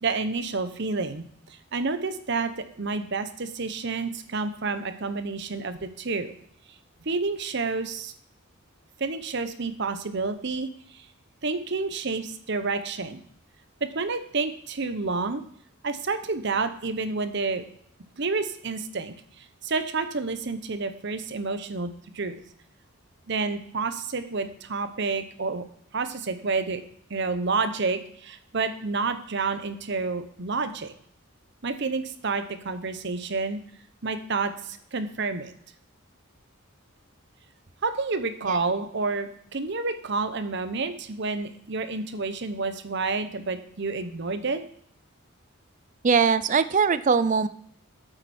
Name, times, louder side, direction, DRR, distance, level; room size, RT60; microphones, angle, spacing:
voice 1, 0.0-6.3 7.1-8.1 9.0-10.7 10.9-11.1 11.4-13.2 13.8-15.4 15.8-17.6 18.2-22.3 23.3-25.6 25.9-26.8 27.1-30.9 31.6-33.6 34.0-35.5 37.8-44.6, right 4 dB, 55° right, 10 dB, 0.9 m, -29 dB
voice 2, 46.0-47.5, right 5 dB, 35° right, 14 dB, 0.4 m, -21 dB
8.9 x 8.0 x 4.3 m, 0.65 s
head